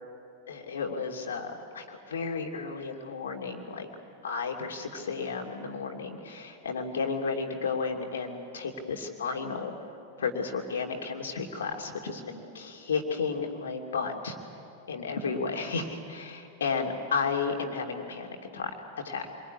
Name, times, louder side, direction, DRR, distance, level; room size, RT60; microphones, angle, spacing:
voice 1, 0.5-3.9 4.2-9.7 10.2-14.4 14.9-18.7 19.0-19.3, left 5 dB, 65° left, 2 dB, 2.8 m, -33 dB
27.5 x 22.0 x 9.9 m, 2.6 s
figure-of-eight pair, 90°, 0 cm